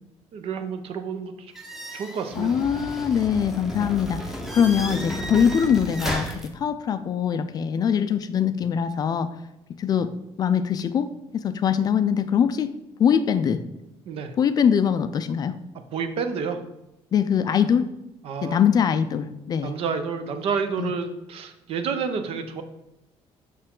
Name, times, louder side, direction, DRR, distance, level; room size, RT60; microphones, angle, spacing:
voice 1, 0.3-1.5 1.9-2.6 14.1-14.3 15.9-16.6 18.2-18.6 19.6-22.6, right 6 dB, 60° right, 8 dB, 0.7 m, -29 dB
sound 1, 1.5-6.5, equal, 5° right, 0.8 m, -33 dB
voice 2, 2.4-9.3 9.8-10.1 10.4-12.7 13.0-13.6 14.4-15.6 17.1-17.9 18.4-19.7 20.8-20.9, left 8 dB, 35° left, 11 dB, 0.4 m, -22 dB
6.6 x 5.8 x 3.7 m, 0.89 s
cardioid pair, 170°, 11 cm